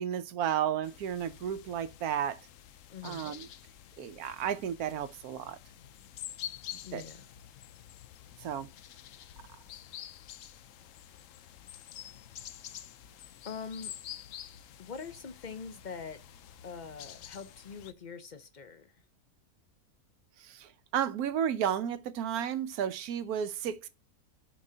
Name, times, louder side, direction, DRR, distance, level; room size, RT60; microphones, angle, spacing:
voice 1, 0.0-2.4 3.0-3.5 4.0-5.6 6.9-7.0 8.4-8.7 20.4-23.9, right 9 dB, 80° right, 1.2 m, -33 dB
sound 1, 0.8-17.9, left 11 dB, 70° left, 0.9 m, -48 dB
voice 2, 2.9-3.3 6.8-7.3 13.4-13.9 14.8-16.2 16.6-19.0, left 5 dB, 50° left, 0.5 m, -43 dB
13.0 x 5.3 x 2.7 m
omnidirectional pair, 1.6 m